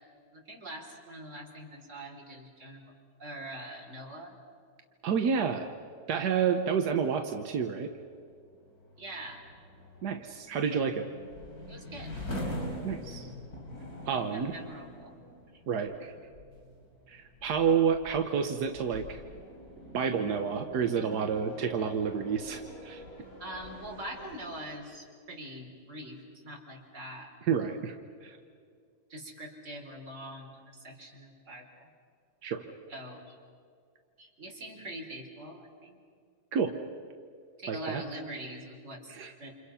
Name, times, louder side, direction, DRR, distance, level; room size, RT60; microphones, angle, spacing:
voice 1, 0.3-2.9 3.2-4.4 9.0-9.4 11.7-12.1 14.3-15.2 23.4-26.2 26.4-27.3 29.1-31.9 32.9-33.4 34.2-36.0 37.6-39.5, right 1 dB, 50° right, 1 dB, 4.0 m, -43 dB
voice 2, 5.0-5.7 6.1-7.9 10.0-11.1 12.8-13.3 14.1-14.6 15.7-16.1 17.1-19.2 19.9-23.0 27.4-27.9 28.2-28.4 32.4-32.7 36.5-36.8 37.7-38.0 39.1-39.3, right 6 dB, 90° right, 5 dB, 1.6 m, -29 dB
sound 1, 7.8-24.8, equal, 70° left, 4.5 m, -44 dB
29.0 x 27.5 x 5.7 m, 2.2 s
omnidirectional pair, 1.7 m